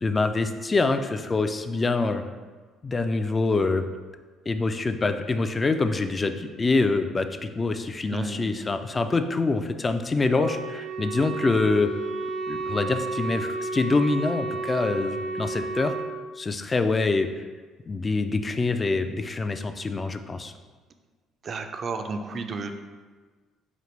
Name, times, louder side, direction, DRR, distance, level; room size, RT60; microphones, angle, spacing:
voice 1, 0.0-2.3 2.8-3.9 4.5-11.9 12.5-15.9 16.4-17.5 17.9-20.5, left 3 dB, 30° left, 8 dB, 0.3 m, -25 dB
voice 2, 8.1-8.5 21.4-22.8, right 3 dB, 45° right, 6 dB, 0.4 m, -32 dB
Wind instrument woodwind instrument, 10.3-16.1, right 3 dB, 90° right, 1.2 m, -32 dB
5.1 x 2.5 x 3.1 m, 1.4 s
hypercardioid pair, 55°, 0 cm